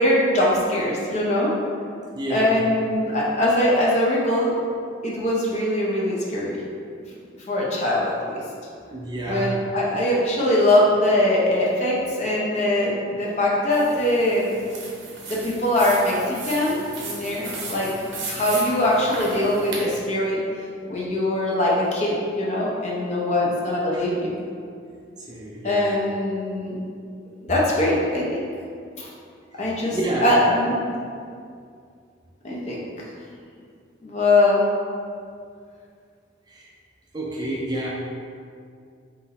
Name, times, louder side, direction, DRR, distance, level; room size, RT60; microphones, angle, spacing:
voice 1, 0.0-1.5 2.3-4.5 5.0-6.6 7.4-8.4 9.3-14.5 15.3-17.9 18.2-20.4 20.9-24.4 25.6-26.8 27.4-28.2 29.0-29.1 29.6-30.9 32.4-32.8 34.0-34.6, left 1 dB, 35° left, -5 dB, 0.7 m, -22 dB
voice 2, 2.1-2.6 8.9-9.6 23.9-24.1 25.3-25.9 29.5-29.6 29.9-30.3 36.5-36.7 37.1-37.9, right 1 dB, 20° right, -4 dB, 0.4 m, -29 dB
sound 1, 13.7-19.8, right 3 dB, 75° right, 0.8 m, -36 dB
4.0 x 2.6 x 4.0 m, 2.3 s
head